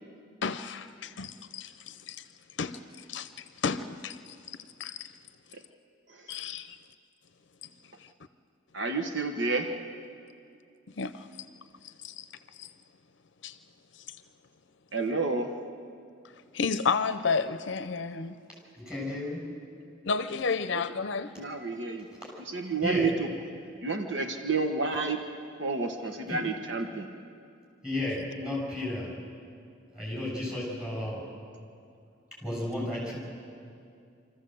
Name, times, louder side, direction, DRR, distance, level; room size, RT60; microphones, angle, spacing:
voice 1, 0.4-2.2 2.6-5.1 6.3-6.8 8.0-8.1 11.0-11.3 11.8-12.3 12.5-12.7 13.4-13.6 13.9-14.2 16.5-18.4 20.0-21.3, left 5 dB, 65° left, 11 dB, 0.6 m, -32 dB
voice 2, 8.7-9.7 14.9-15.5 20.7-20.8 21.4-22.1 22.5-23.3 23.8-25.2 25.6-27.1, right 4 dB, 65° right, 5 dB, 1.3 m, -30 dB
voice 3, 18.8-19.4 22.2-22.3 22.8-23.1 26.3-26.4 27.8-29.1 29.9-31.2 32.4-33.2, left 1 dB, 5° right, -3 dB, 6.7 m, -33 dB
26.0 x 14.5 x 7.8 m, 2.4 s
head